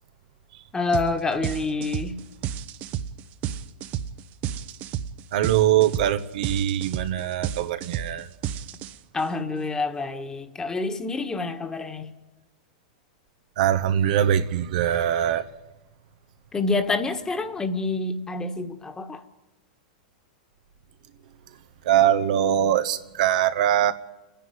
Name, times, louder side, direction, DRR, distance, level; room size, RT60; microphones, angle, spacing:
voice 1, 0.7-2.2 9.1-12.1 16.5-19.2, left 3 dB, 15° left, 1.6 m, -27 dB
sound 1, 0.9-1.1 1.4-9.2, right 10 dB, 45° right, 0.9 m, -31 dB
voice 2, 5.3-8.3 13.6-15.5 21.8-23.9, right 10 dB, 70° right, 1.0 m, -22 dB
29.5 x 10.5 x 9.4 m
hypercardioid pair, 120°, 4 cm